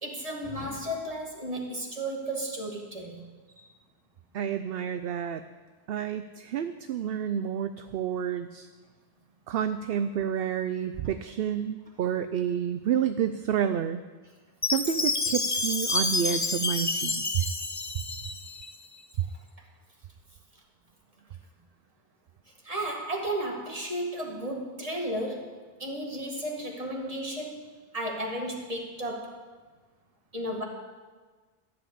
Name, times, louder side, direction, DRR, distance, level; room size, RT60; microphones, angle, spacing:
voice 1, 0.0-3.7 22.6-29.4 30.3-30.6, right 1 dB, 35° right, 0 dB, 2.1 m, -34 dB
voice 2, 4.3-5.4 5.9-8.7 9.5-14.0 14.6-17.4 19.2-19.3, right 9 dB, 70° right, 10 dB, 0.8 m, -29 dB
Chime, 14.6-18.8, left 3 dB, 25° left, 0.4 m, -29 dB
13.5 x 7.9 x 8.4 m, 1.4 s
omnidirectional pair, 1.0 m